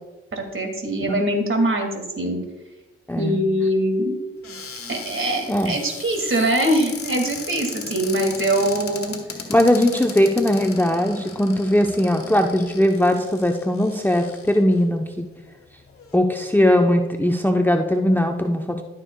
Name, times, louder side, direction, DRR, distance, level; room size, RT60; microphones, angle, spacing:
voice 1, 0.3-2.4 3.2-4.2 4.9-9.1, right 1 dB, 45° right, 4 dB, 2.2 m, -22 dB
voice 2, 3.1-3.4 5.5-5.8 9.5-15.3 16.1-18.8, left 1 dB, 5° left, 4 dB, 0.8 m, -19 dB
Cupboard open or close, 4.4-14.8 15.5-15.6 15.8-16.2, left 4 dB, 50° left, 1.9 m, -37 dB
13.5 x 6.6 x 2.3 m, 1.1 s
hypercardioid pair, 45°, 29 cm